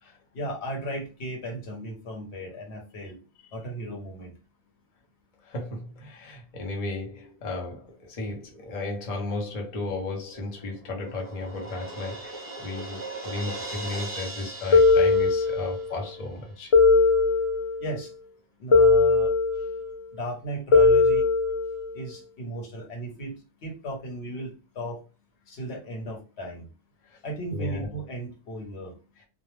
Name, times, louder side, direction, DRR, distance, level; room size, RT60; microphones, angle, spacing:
voice 1, 0.3-3.2 3.5-4.3 17.8-18.1 18.6-19.4 20.1-21.3 21.9-23.3 23.6-25.0 25.5-26.7 27.2-29.0, right 1 dB, 80° left, 1.1 m, -35 dB
voice 2, 5.4-13.0 13.2-16.7 27.1-27.2 27.5-27.9, left 2 dB, 40° left, 0.7 m, -34 dB
Crash cymbal, 10.3-16.0, right 2 dB, 15° right, 0.5 m, -39 dB
sound 1, 14.7-15.9 16.7-17.9 18.7-19.9 20.7-21.9, left 4 dB, 55° left, 0.3 m, -19 dB
2.3 x 2.0 x 3.1 m
omnidirectional pair, 1.1 m